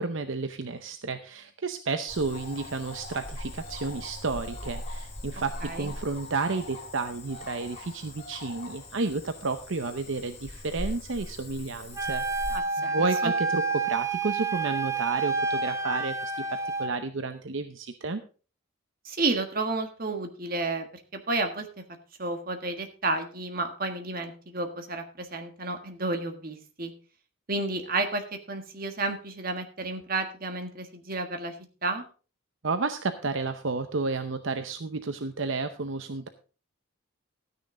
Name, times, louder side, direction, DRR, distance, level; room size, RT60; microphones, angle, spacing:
voice 1, 0.0-18.2 32.6-36.3, right 3 dB, 65° right, 9 dB, 0.7 m, -31 dB
Cricket / Frog, 2.1-12.6, left 1 dB, 30° left, 2.9 m, -40 dB
voice 2, 5.6-5.9 12.5-13.3 19.0-20.9 21.1-21.8 22.2-26.9 27.5-31.5 31.8-32.0, right 2 dB, 45° right, 6 dB, 1.6 m, -31 dB
Wind instrument woodwind instrument, 12.0-16.9, right 4 dB, 15° right, 0.6 m, -29 dB
13.0 x 9.6 x 3.8 m, 0.37 s
head